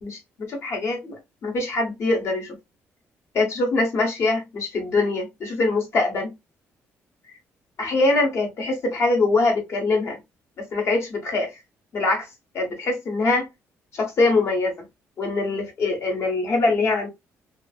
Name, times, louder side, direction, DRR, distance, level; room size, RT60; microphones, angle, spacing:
voice 1, 0.0-2.6 3.3-6.3 7.8-10.2 10.6-11.5 11.9-12.3 12.5-13.5 13.9-14.7 15.2-17.1, left 3 dB, 55° left, 1.1 m, -23 dB
2.6 x 2.4 x 2.3 m
cardioid pair, 115°, 5 cm